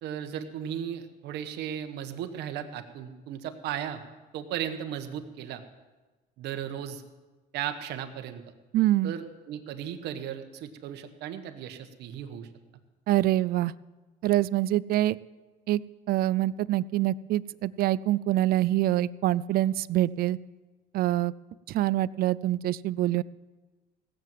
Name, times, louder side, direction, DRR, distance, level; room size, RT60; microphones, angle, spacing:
voice 1, 0.0-4.0 4.3-5.6 6.4-7.0 7.5-8.4 9.0-12.5, right 9 dB, 80° right, 7 dB, 1.3 m, -36 dB
voice 2, 8.7-9.1 13.1-13.7 14.2-15.2 15.7-15.8 16.1-20.4 20.9-21.3 21.7-23.2, right 14 dB, 65° right, 20 dB, 0.4 m, -25 dB
17.0 x 7.7 x 7.5 m, 1.2 s
cardioid pair, 110°, 17 cm